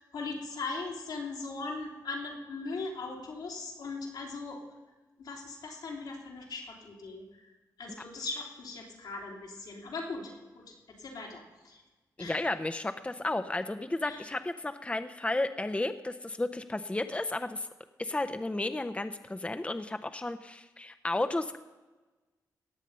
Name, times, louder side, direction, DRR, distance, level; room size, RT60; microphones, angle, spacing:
voice 1, 0.0-4.6 5.2-7.5 7.8-11.8 12.2-12.4 14.1-14.2, left 3 dB, 80° left, -1 dB, 3.0 m, -39 dB
voice 2, 12.2-17.7 18.0-21.6, left 2 dB, 15° left, 9 dB, 0.7 m, -33 dB
18.0 x 7.2 x 5.5 m, 1.2 s
cardioid pair, 55°, 7 cm